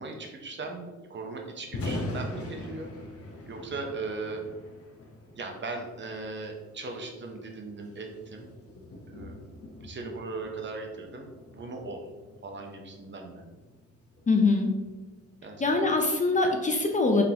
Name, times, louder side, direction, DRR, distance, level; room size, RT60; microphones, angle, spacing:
voice 1, 0.0-2.9 3.5-4.4 5.4-8.5 9.1-9.4 9.8-11.3 11.5-12.0 12.4-13.4 15.4-15.8, right 3 dB, 40° right, 2 dB, 0.8 m, -38 dB
Thunder, 1.6-15.7, left 1 dB, 50° left, 0.9 m, -43 dB
voice 2, 14.3-14.7 15.6-17.2, left 3 dB, 25° left, 3 dB, 0.5 m, -23 dB
3.7 x 3.7 x 2.8 m, 1.2 s
cardioid pair, 90°, 30 cm